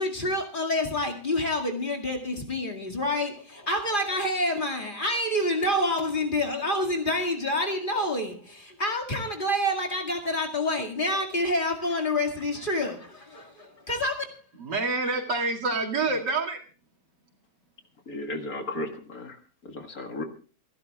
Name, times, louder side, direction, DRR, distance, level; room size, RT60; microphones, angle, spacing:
voice 1, 0.0-14.2, left 1 dB, 30° left, 2.2 m, -28 dB
voice 2, 14.6-16.6, right 3 dB, 80° right, 2.8 m, -27 dB
voice 3, 18.1-20.2, left 2 dB, 60° left, 2.3 m, -35 dB
27.5 x 11.5 x 2.4 m
omnidirectional pair, 1.8 m